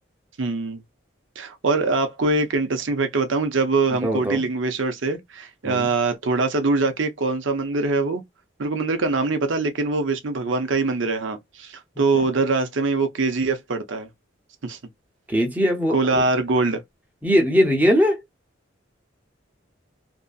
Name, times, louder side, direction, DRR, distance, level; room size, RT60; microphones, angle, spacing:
voice 1, 0.4-0.8 1.4-8.2 8.6-14.1 14.6-14.8 15.9-16.8, right 3 dB, 75° right, 0.7 m, -23 dB
voice 2, 4.0-4.4 5.6-5.9 12.1-12.2 15.3-16.2 17.2-18.2, equal, 10° right, 0.7 m, -20 dB
2.7 x 2.6 x 2.4 m
head